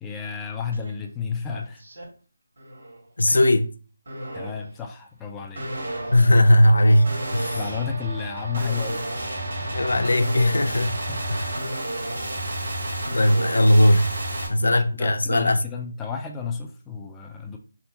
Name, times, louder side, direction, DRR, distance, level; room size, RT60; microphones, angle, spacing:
voice 1, 0.0-1.8 3.3-3.4 4.3-5.7 7.5-9.1 9.6-9.8 11.1-11.3 11.6-11.7 14.6-17.6, left 6 dB, 10° left, 0.3 m, -32 dB
sound 1, 0.7-0.9 1.3-2.0 2.6-3.0 4.1-4.7 5.5-14.5, right 1 dB, 65° right, 1.6 m, -32 dB
voice 2, 3.2-3.7 6.1-7.6 9.7-11.0 11.3-11.5 13.1-14.1 14.5-15.6, left 1 dB, 75° left, 0.4 m, -18 dB
sound 2, 5.8-12.0, right 3 dB, 50° right, 0.6 m, -41 dB
3.5 x 2.1 x 4.2 m
figure-of-eight pair, 160°, 0 cm